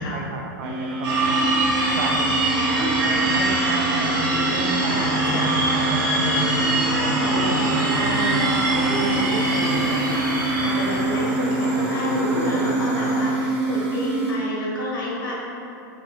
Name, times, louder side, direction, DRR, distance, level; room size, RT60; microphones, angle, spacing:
voice 1, 0.0-1.4 1.9-2.4 2.7-6.9 7.4-8.8, right 3 dB, 60° right, 2 dB, 0.5 m, -32 dB
sound 1, 0.6-14.3, right 2 dB, 40° right, 1.0 m, -26 dB
sound 2, 1.0-11.1, right 2 dB, 90° right, 1.0 m, -24 dB
voice 2, 1.7-2.2 2.8-2.9 3.3-3.8 4.9-5.5 6.8-15.3, left 1 dB, 90° left, -5 dB, 1.2 m, -30 dB
sound 3, 2.4-13.3, equal, 15° right, 0.9 m, -30 dB
4.7 x 2.7 x 2.9 m, 2.8 s
supercardioid pair, 140°, 11 cm